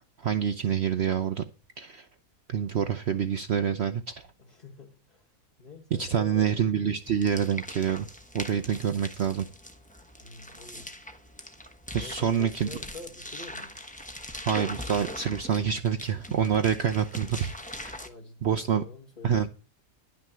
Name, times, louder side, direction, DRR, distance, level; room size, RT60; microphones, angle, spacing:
voice 1, 0.2-1.4 1.8-2.1 2.5-4.3 6.0-8.1 8.3-9.5 11.9-12.7 14.5-17.5 17.8-18.0 18.4-18.8 19.2-19.5, right 8 dB, 55° right, 9 dB, 0.9 m, -27 dB
voice 2, 4.5-5.3 5.6-6.6 10.2-10.9 11.9-13.8 18.0-19.5, left 4 dB, 30° left, -3 dB, 2.0 m, -47 dB
sound 1, 7.0-18.1, left 1 dB, 5° left, 1.0 m, -41 dB
11.0 x 6.1 x 7.4 m, 0.34 s
omnidirectional pair, 1.5 m